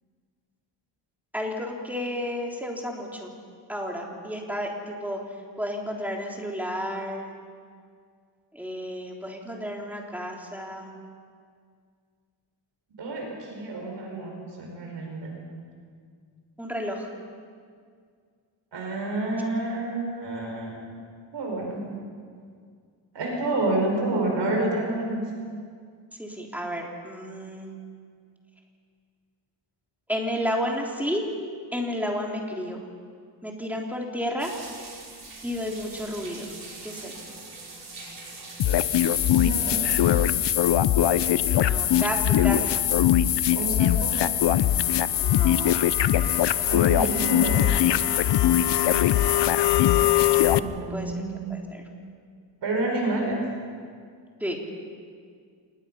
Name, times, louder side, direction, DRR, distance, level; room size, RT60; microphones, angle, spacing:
voice 1, 1.3-3.3 3.7-5.2 5.6-7.3 8.5-10.9 16.6-17.1 26.2-27.7 30.1-31.2 31.7-32.8 33.4-34.5 35.4-36.5 36.8-37.2 41.4-42.8 45.1-45.8 50.9-51.1 51.5-51.8 54.4-54.6, equal, 5° right, 0 dB, 3.3 m, -32 dB
voice 2, 13.0-15.4 18.7-20.8 21.3-21.9 23.1-25.2 39.3-40.1 43.5-44.1 46.7-47.8 50.6-51.6 52.6-53.5, right 2 dB, 65° right, 0 dB, 5.4 m, -29 dB
sound 1, 34.4-42.2, right 3 dB, 45° right, 5.7 m, -43 dB
sound 2, 38.6-50.6, left 11 dB, 65° left, 0.8 m, -21 dB
27.0 x 20.5 x 5.6 m, 2.1 s
wide cardioid pair, 125°, 45 cm